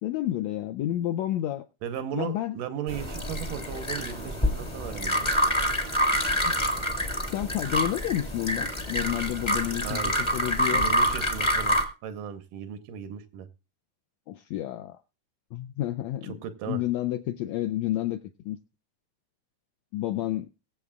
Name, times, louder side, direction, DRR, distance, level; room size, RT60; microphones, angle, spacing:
voice 1, 0.0-1.7 2.1-2.6 6.5-6.6 7.2-10.8 14.3-15.0 15.5-16.4 16.7-18.2 18.4-18.6 19.9-20.5, left 13 dB, 80° left, 7 dB, 1.5 m, -30 dB
voice 2, 1.8-5.3 9.8-10.2 10.7-13.5 16.2-16.8, right 8 dB, 90° right, 10 dB, 2.5 m, -36 dB
sound 1, 2.9-11.8, equal, 25° left, 0.6 m, -27 dB
22.0 x 7.5 x 2.4 m, 0.31 s
omnidirectional pair, 3.7 m